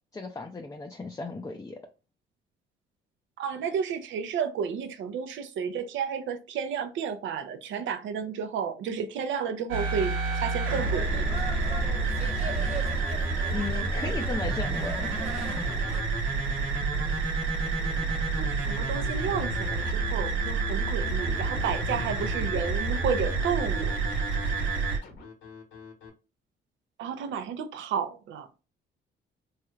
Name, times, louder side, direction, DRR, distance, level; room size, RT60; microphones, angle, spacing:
voice 1, 0.1-1.8 13.5-15.1, left 3 dB, 15° left, 0.4 m, -35 dB
voice 2, 3.4-11.2 18.3-24.0 27.0-28.5, right 7 dB, 75° right, 0.6 m, -32 dB
sound 1, 9.7-25.0, right 3 dB, 90° right, 1.1 m, -28 dB
sound 2, 10.7-16.0, right 1 dB, 35° right, 1.0 m, -38 dB
Scratching (performance technique), 17.6-26.1, left 4 dB, 70° left, 1.0 m, -47 dB
3.2 x 2.8 x 2.3 m
cardioid pair, 90°, 20 cm